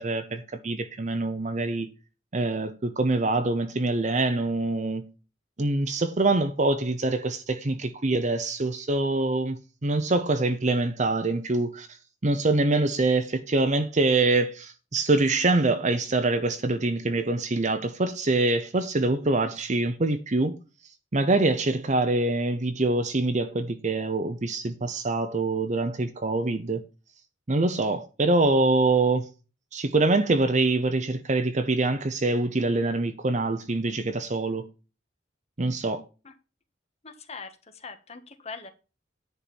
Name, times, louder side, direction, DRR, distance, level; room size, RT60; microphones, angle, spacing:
voice 1, 0.0-1.9 2.3-5.1 5.6-20.6 20.8-26.9 27.5-29.3 29.7-34.7 35.6-36.0, right 2 dB, 40° right, 0.8 m, -25 dB
voice 2, 37.0-38.7, left 4 dB, 35° left, 1.4 m, -42 dB
10.5 x 4.5 x 7.1 m
head